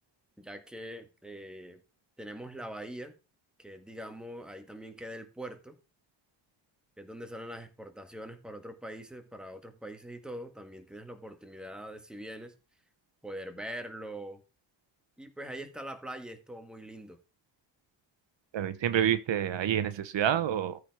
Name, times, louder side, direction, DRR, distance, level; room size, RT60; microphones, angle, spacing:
voice 1, 0.4-1.8 2.2-3.1 3.6-5.8 7.0-12.5 13.2-14.4 15.2-17.2, right 1 dB, ahead, 1.6 m, -43 dB
voice 2, 18.5-20.8, right 10 dB, 75° right, 1.1 m, -28 dB
14.0 x 4.7 x 4.8 m
wide cardioid pair, 135°, 44 cm